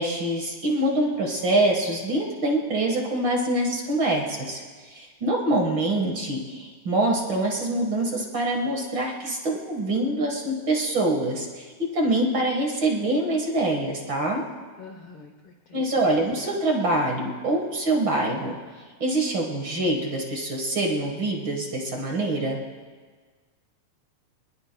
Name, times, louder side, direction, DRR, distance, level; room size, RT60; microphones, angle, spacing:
voice 1, 0.0-14.4 15.7-18.6 19.0-22.6, right 1 dB, 45° right, 0 dB, 1.8 m, -25 dB
voice 2, 14.8-15.8, left 4 dB, 70° left, 4 dB, 1.3 m, -45 dB
24.0 x 21.5 x 2.2 m, 1.5 s
omnidirectional pair, 3.6 m